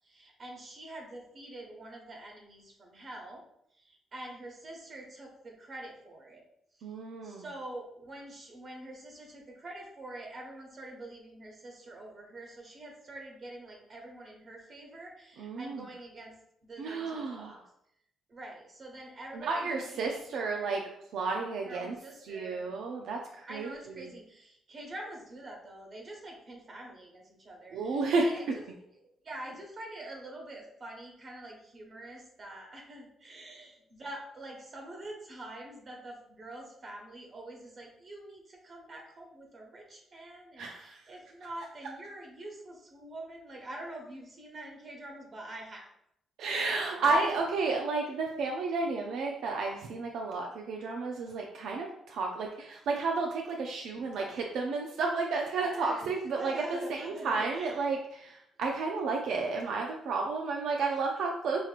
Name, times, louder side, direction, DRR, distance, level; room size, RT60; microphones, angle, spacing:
voice 1, 0.0-3.4 3.7-6.4 6.7-6.9 7.2-16.3 16.6-17.6 18.3-20.8 21.6-22.8 23.5-28.9 29.2-45.9 46.9-47.3 54.1-54.6 55.5-57.8, right 1 dB, 45° right, 0 dB, 1.2 m, -45 dB
voice 2, 6.8-7.5 15.4-15.9 16.8-17.6 19.3-20.8 21.1-21.9 22.2-24.1 27.7-28.6 40.6-41.0 41.8-41.9 46.4-61.6, right 3 dB, 75° right, 1 dB, 0.4 m, -32 dB
5.6 x 2.9 x 2.4 m, 0.76 s
cardioid pair, 90°, 0 cm